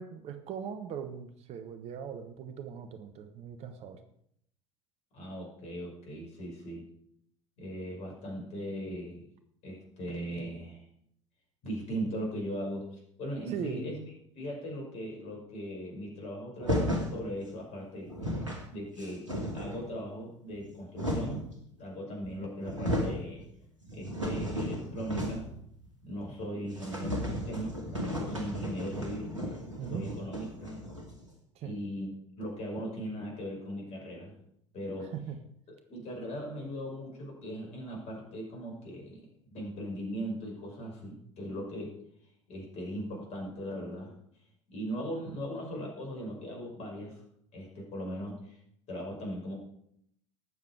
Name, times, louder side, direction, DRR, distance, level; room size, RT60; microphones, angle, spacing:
voice 1, 0.0-4.0 13.5-13.9 29.8-30.1 31.5-31.8 35.1-35.4, right 7 dB, 45° right, 8 dB, 1.2 m, -40 dB
voice 2, 5.1-6.9 7.6-9.3 9.6-10.8 11.6-14.0 14.3-19.3 19.5-21.4 21.8-23.4 23.9-25.5 26.0-29.6 29.9-30.8 31.6-34.4 34.7-35.1 35.9-41.9 42.5-44.2 44.7-47.2 47.5-48.6 48.9-49.5, equal, 45° left, 0 dB, 5.9 m, -39 dB
sound 1, 16.6-17.2 17.8-17.9 18.1-18.6 19.0-19.9 20.5-21.5 22.2-22.3 22.6-23.2 23.6-25.6 25.8-25.9 26.3-26.4 26.7-31.2, equal, 90° right, 2.5 m, -34 dB
19.0 x 7.4 x 4.8 m, 0.70 s
figure-of-eight pair, 70°, 15 cm